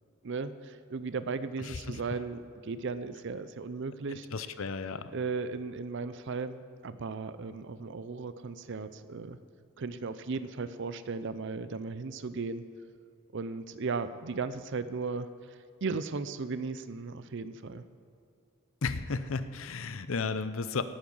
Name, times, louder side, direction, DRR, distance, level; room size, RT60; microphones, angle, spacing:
voice 1, 0.2-4.3 5.1-9.4 9.8-12.6 13.3-17.8, right 4 dB, 55° right, 13 dB, 0.5 m, -36 dB
voice 2, 1.7-2.0 4.3-5.1 18.8-20.8, left 4 dB, 65° left, 12 dB, 0.6 m, -33 dB
18.0 x 9.6 x 5.4 m, 2.5 s
head